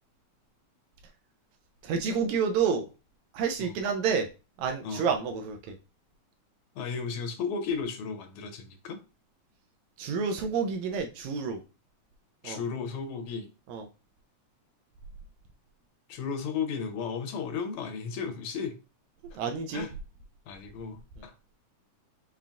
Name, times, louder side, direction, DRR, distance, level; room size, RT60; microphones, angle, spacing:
voice 1, 1.8-2.9 3.3-4.3 4.6-5.8 10.0-11.6 12.4-12.6 13.7-13.9 19.3-19.9, right 6 dB, 80° right, 4 dB, 1.7 m, -29 dB
voice 2, 6.8-9.0 12.4-13.5 16.1-18.8 19.7-19.9 20.5-21.3, left 5 dB, 80° left, 7 dB, 1.9 m, -34 dB
5.6 x 3.8 x 2.4 m, 0.31 s
omnidirectional pair, 3.6 m